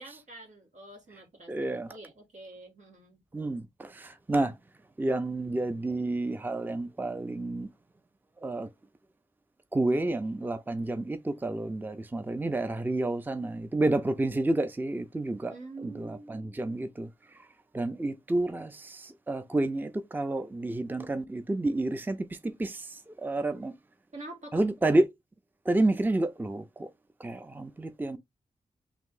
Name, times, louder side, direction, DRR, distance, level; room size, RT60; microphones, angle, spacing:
voice 1, 0.0-3.2 15.4-16.6 24.1-24.6, right 2 dB, 75° right, 1.8 m, -46 dB
voice 2, 1.5-1.9 3.3-4.5 5.0-7.7 8.4-8.7 9.7-15.5 15.8-17.1 17.7-22.2 22.6-23.7 24.5-25.1 25.7-26.9 27.2-28.2, right 2 dB, 15° right, 0.5 m, -30 dB
3.5 x 2.7 x 3.7 m
cardioid pair, 65°, 13 cm